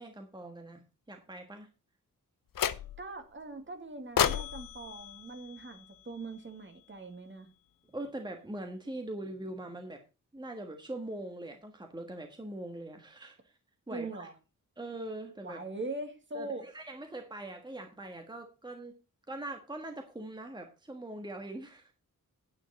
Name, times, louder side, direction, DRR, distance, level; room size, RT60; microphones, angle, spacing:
voice 1, 0.0-1.7 7.9-10.0 10.3-13.5 13.9-14.3 14.8-15.6 16.3-18.9 19.3-21.9, right 1 dB, 15° right, 4 dB, 1.5 m, -42 dB
sound 1, 2.5-3.2 4.2-6.4, left 9 dB, 90° left, 0.8 m, -33 dB
voice 2, 3.0-7.5 13.9-14.3 15.4-16.6, right 2 dB, 35° right, 6 dB, 2.2 m, -41 dB
10.0 x 9.3 x 4.2 m, 0.29 s
wide cardioid pair, 165°, 32 cm